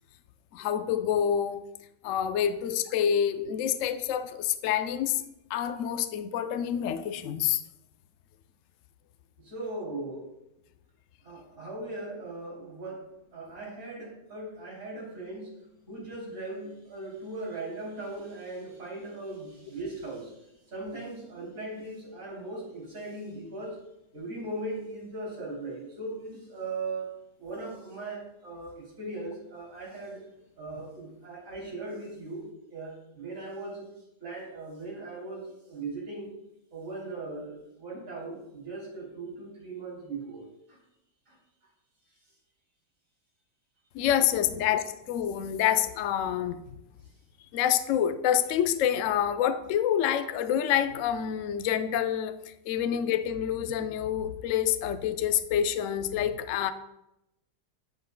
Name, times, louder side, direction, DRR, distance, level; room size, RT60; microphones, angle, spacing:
voice 1, 0.5-1.6 2.0-5.2 5.5-7.6 43.9-46.8 47.5-56.7, left 9 dB, 85° left, 0.6 m, -27 dB
voice 2, 9.4-10.3 11.2-20.4 20.7-23.8 24.1-27.1 27.4-30.2 30.6-33.9 34.2-36.3 36.7-40.8 41.3-41.4 44.5-44.6, right 2 dB, 45° right, 3.6 m, -39 dB
10.5 x 7.7 x 2.2 m
omnidirectional pair, 1.9 m